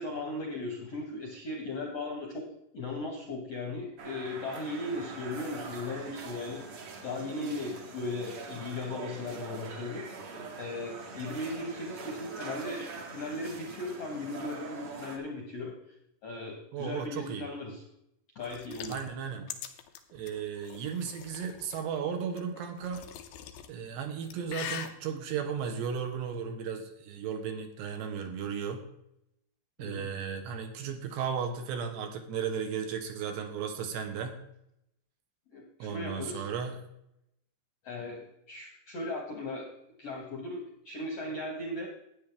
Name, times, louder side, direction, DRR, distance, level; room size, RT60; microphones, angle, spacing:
voice 1, 0.0-2.5 2.7-6.6 7.0-10.0 10.6-15.7 16.2-17.8 18.3-19.0 29.8-30.1 35.5-36.5 37.8-38.2 38.5-39.7 40.0-41.9, left 2 dB, 60° left, -1 dB, 1.7 m, -37 dB
sound 1, 4.0-15.2, right 4 dB, 55° right, 2.1 m, -44 dB
voice 2, 16.7-17.4 18.9-19.5 20.1-23.0 23.7-28.8 29.8-34.3 35.8-36.8, right 7 dB, 75° right, 5 dB, 3.1 m, -35 dB
sound 2, 18.4-21.8 22.4-23.7 24.1-24.9, left 10 dB, 80° left, 2.1 m, -42 dB
13.0 x 9.3 x 3.6 m, 0.79 s
omnidirectional pair, 5.3 m